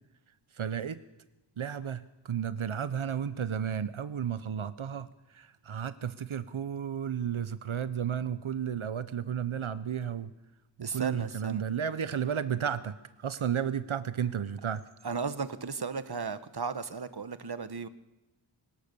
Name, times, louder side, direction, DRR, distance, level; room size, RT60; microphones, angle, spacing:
voice 1, 0.6-1.0 1.6-10.3 10.8-12.9 13.2-14.8, right 8 dB, 90° right, 0.8 m, -33 dB
voice 2, 10.8-11.6 15.0-17.9, right 5 dB, 55° right, 1.1 m, -35 dB
23.5 x 17.0 x 6.8 m
wide cardioid pair, 40°, 47 cm